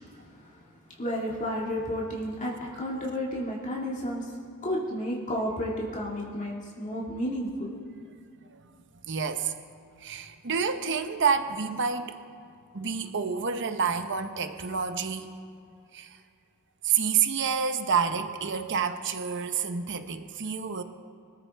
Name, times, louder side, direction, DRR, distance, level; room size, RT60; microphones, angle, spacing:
voice 1, 0.1-0.6 1.0-4.4 4.6-7.8, equal, 35° left, -4 dB, 2.0 m, -32 dB
voice 2, 9.0-9.5 10.0-12.2 12.7-15.3 15.9-16.2 16.8-20.8, right 6 dB, 55° right, 8 dB, 1.0 m, -28 dB
24.5 x 14.0 x 3.5 m, 2.5 s
head